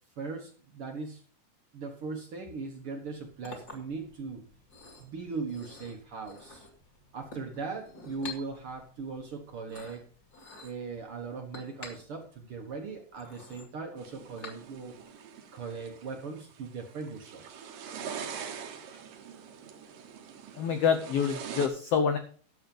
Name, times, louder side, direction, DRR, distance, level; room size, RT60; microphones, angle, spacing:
voice 1, 0.2-1.2 1.7-4.4 5.0-6.7 7.1-10.1 10.6-14.9 15.5-17.5 18.9-19.0, right 4 dB, 55° right, 3 dB, 1.6 m, -39 dB
Chink clink, 3.0-15.0, left 3 dB, 30° left, 2.5 m, -50 dB
sound 1, 14.0-21.7, right 7 dB, 80° right, 3.0 m, -43 dB
voice 2, 20.6-22.2, left 6 dB, 80° left, 8 dB, 1.3 m, -26 dB
12.0 x 7.3 x 5.3 m, 0.43 s
omnidirectional pair, 4.0 m